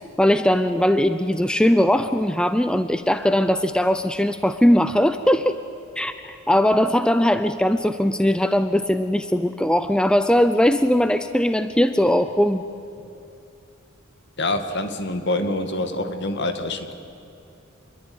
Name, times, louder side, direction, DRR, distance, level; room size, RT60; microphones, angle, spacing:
voice 1, 0.2-5.6 6.0-12.6, equal, 5° left, 10 dB, 0.6 m, -20 dB
voice 2, 14.4-16.9, left 2 dB, 55° left, 7 dB, 2.1 m, -26 dB
27.0 x 22.0 x 9.5 m, 2.7 s
head